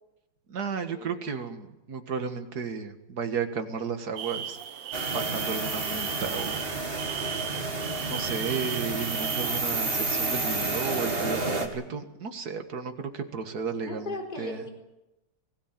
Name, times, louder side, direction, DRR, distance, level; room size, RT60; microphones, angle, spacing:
voice 1, 0.5-4.6 5.1-6.6 8.1-14.6, right 5 dB, 45° right, 7 dB, 2.1 m, -33 dB
sound 1, 4.2-9.6, right 9 dB, 85° right, 2.0 m, -37 dB
sound 2, 4.9-11.7, right 3 dB, 25° right, 2.6 m, -30 dB
voice 2, 13.8-14.7, left 2 dB, 20° left, 3 dB, 4.2 m, -37 dB
23.5 x 16.5 x 9.0 m, 0.97 s
omnidirectional pair, 2.4 m